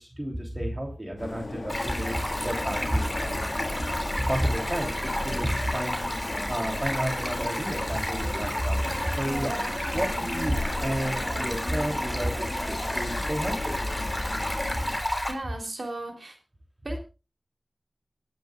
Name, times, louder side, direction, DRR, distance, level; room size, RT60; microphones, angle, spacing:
voice 1, 0.0-3.7 4.2-9.6 9.9-13.8, equal, 30° right, 1 dB, 3.3 m, -31 dB
sound 1, 1.2-15.0, left 2 dB, 60° left, 2.2 m, -37 dB
Stream, 1.7-15.3, left 1 dB, 5° left, 3.9 m, -31 dB
sound 2, 6.0-15.0, right 1 dB, 50° right, 3.3 m, -41 dB
voice 2, 15.3-16.4 16.8-17.0, right 1 dB, 65° right, 3 dB, 3.6 m, -35 dB
26.5 x 10.5 x 2.5 m, 0.31 s
wide cardioid pair, 50°, 0 cm